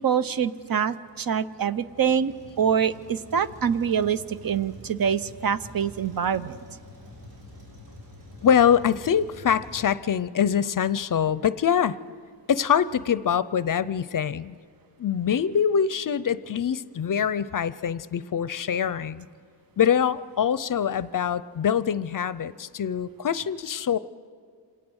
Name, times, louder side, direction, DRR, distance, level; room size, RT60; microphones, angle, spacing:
voice 1, 0.0-6.6, right 7 dB, 55° right, 13 dB, 0.7 m, -25 dB
Truck, 1.1-9.9, left 1 dB, 85° right, 7.7 m, -47 dB
voice 2, 8.4-12.0 12.5-14.5 15.0-19.3 19.8-24.0, left 8 dB, 50° left, 17 dB, 0.5 m, -24 dB
26.5 x 18.5 x 6.3 m, 2.1 s
wide cardioid pair, 140°, 42 cm